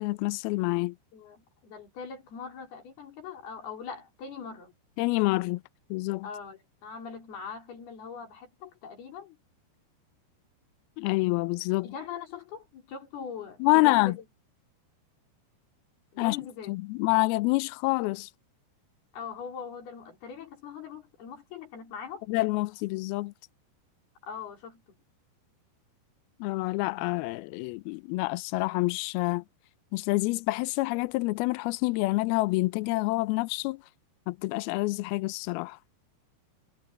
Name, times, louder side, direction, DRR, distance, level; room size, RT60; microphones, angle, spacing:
voice 1, 0.0-1.0 5.0-5.6 5.9-6.3 11.0-11.9 13.6-14.2 16.2-16.4 16.7-18.3 22.3-23.3 26.4-29.4 29.9-33.8 34.3-35.8, left 23 dB, 85° left, 2.2 m, -27 dB
voice 2, 1.1-4.7 6.2-9.4 11.8-14.2 16.1-16.7 19.1-22.2 24.2-24.8, left 6 dB, 60° left, 6.3 m, -41 dB
omnidirectional pair, 5.0 m